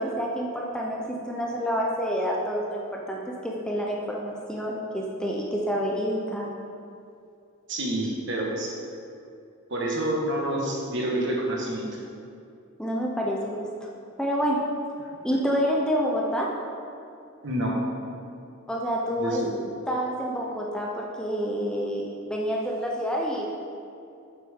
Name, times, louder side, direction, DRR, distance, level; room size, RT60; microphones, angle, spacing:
voice 1, 0.0-6.5 12.8-13.9 14.2-14.6 15.2-16.5 18.7-19.4 19.9-23.5, equal, 5° left, -2 dB, 0.7 m, -28 dB
voice 2, 7.7-8.7 9.7-11.9 17.4-17.7 19.2-19.5, right 1 dB, 60° right, -2 dB, 1.6 m, -28 dB
8.8 x 7.7 x 3.7 m, 2.5 s
head